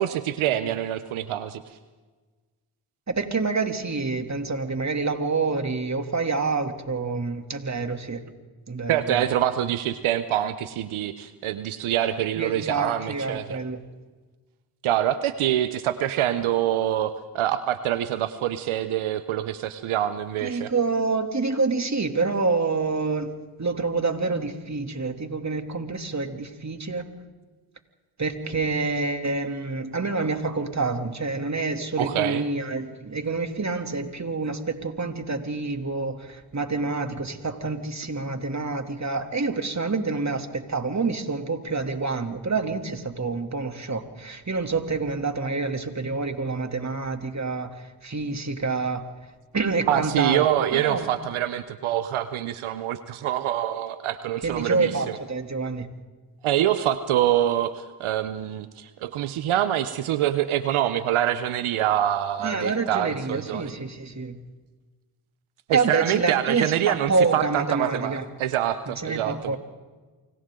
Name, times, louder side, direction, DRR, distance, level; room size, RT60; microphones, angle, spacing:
voice 1, 0.0-1.6 8.9-13.6 14.8-20.7 32.0-32.4 49.9-55.2 56.4-63.7 65.7-69.6, right 11 dB, 85° right, 12 dB, 0.9 m, -25 dB
voice 2, 3.1-8.2 8.7-9.2 12.4-13.8 20.4-27.1 28.2-49.1 49.5-51.1 54.4-55.9 62.4-64.4 65.7-68.2 69.0-69.6, right 4 dB, 35° right, 6 dB, 2.8 m, -27 dB
29.5 x 25.0 x 3.8 m, 1.3 s
supercardioid pair, 45°, 48 cm